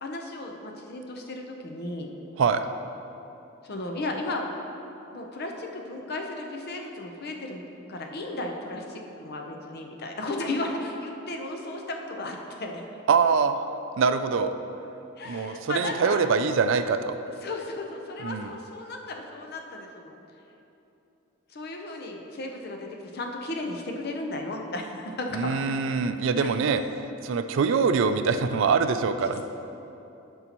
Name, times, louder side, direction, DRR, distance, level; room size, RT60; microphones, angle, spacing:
voice 1, 0.0-2.1 3.6-4.4 5.1-12.8 15.2-16.3 17.4-20.2 21.5-25.8 26.4-26.5, left 2 dB, 50° left, 2 dB, 0.7 m, -35 dB
voice 2, 13.1-13.6 14.0-14.5 15.3-17.2 18.2-18.5 25.3-29.4, right 5 dB, 65° right, 9 dB, 0.4 m, -24 dB
12.0 x 5.5 x 3.0 m, 3.0 s
head